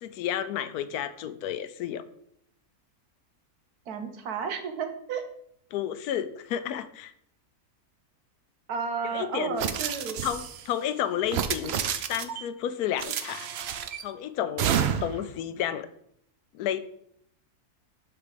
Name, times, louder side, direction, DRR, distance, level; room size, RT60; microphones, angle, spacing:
voice 1, 0.0-2.0 5.7-7.1 9.0-9.7 10.2-11.8 12.1-13.5 14.0-14.7 15.0-15.9 16.5-16.8, left 10 dB, 80° left, 13 dB, 1.1 m, -31 dB
voice 2, 3.9-5.2 8.7-10.2, right 6 dB, 80° right, 6 dB, 1.5 m, -32 dB
sound 1, 9.6-10.6 11.2-12.4 13.0-14.0 14.6-15.2, right 8 dB, 65° right, 0.6 m, -29 dB
5.9 x 5.9 x 5.0 m, 0.71 s
omnidirectional pair, 1.6 m